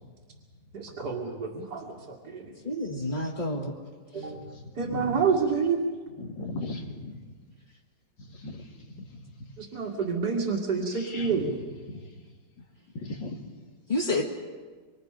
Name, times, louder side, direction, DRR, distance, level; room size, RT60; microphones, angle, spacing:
voice 1, 0.7-2.5 4.1-4.4 4.8-5.8 9.6-11.5, right 5 dB, 60° right, -3 dB, 2.6 m, -28 dB
voice 2, 2.6-3.7 4.2-4.3 13.9-14.2, left 2 dB, 30° left, -3 dB, 2.1 m, -29 dB
voice 3, 4.3-5.1 6.2-7.2 8.3-8.6 8.9-9.0 10.9-11.4 11.9-12.0 12.9-13.4, left 2 dB, 90° left, 1 dB, 3.0 m, -37 dB
26.0 x 25.5 x 5.2 m, 1.5 s
omnidirectional pair, 1.9 m